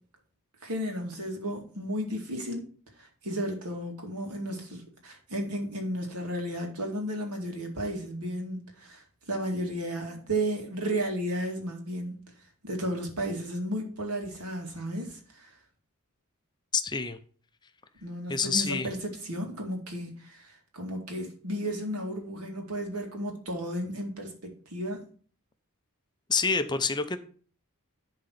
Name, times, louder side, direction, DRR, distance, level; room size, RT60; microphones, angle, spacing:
voice 1, 0.6-2.7 3.0-12.2 12.6-15.5 18.0-19.0 19.2-25.0, right 1 dB, 85° right, 2.3 m, -33 dB
voice 2, 16.7-17.2 18.3-18.9 26.3-27.2, left 5 dB, 20° left, 0.6 m, -27 dB
11.0 x 3.8 x 5.6 m
head